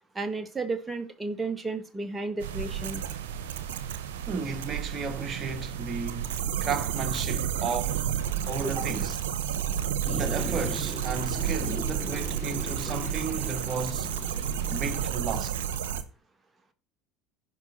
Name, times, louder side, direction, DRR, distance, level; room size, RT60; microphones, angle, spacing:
voice 1, 0.1-3.0 8.6-8.8, right 3 dB, 15° right, 1.8 m, -33 dB
sound 1, 2.4-16.0, right 9 dB, 80° right, 0.9 m, -31 dB
voice 2, 4.3-8.2 8.5-9.2 10.1-14.1 14.7-15.5, right 5 dB, 40° right, 1.7 m, -34 dB
sound 2, 10.0-15.0, left 4 dB, 30° left, 1.3 m, -39 dB
15.5 x 5.5 x 4.2 m
hypercardioid pair, 75°, 0 cm